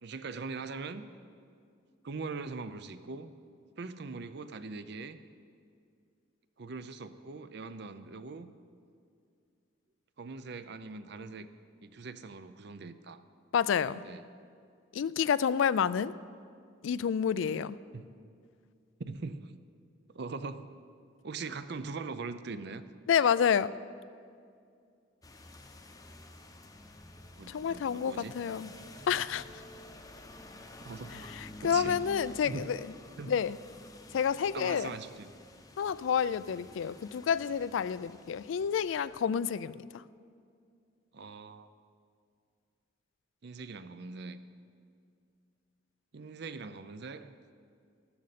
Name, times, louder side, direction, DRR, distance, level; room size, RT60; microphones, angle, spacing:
voice 1, 0.0-1.0 2.0-3.3 3.8-5.2 6.6-8.5 10.2-11.5 11.8-13.2 13.9-14.2 17.9-18.0 19.1-19.5 20.1-20.7 21.2-22.8 27.4-28.3 30.8-31.3 31.6-32.0 32.4-32.6 33.2-33.3 34.5-35.3 41.1-41.7 43.4-44.4 46.1-47.3, right 4 dB, 55° right, 12 dB, 0.5 m, -41 dB
voice 2, 13.5-14.0 14.9-16.1 16.8-17.8 23.1-23.7 27.5-28.7 29.1-29.6 31.1-32.9 33.3-33.6 34.1-35.0 35.8-40.0, left 7 dB, 75° left, 17 dB, 0.3 m, -29 dB
sound 1, 25.2-39.2, left 1 dB, 20° left, 0.7 m, -50 dB
14.0 x 13.0 x 4.2 m, 2.3 s
head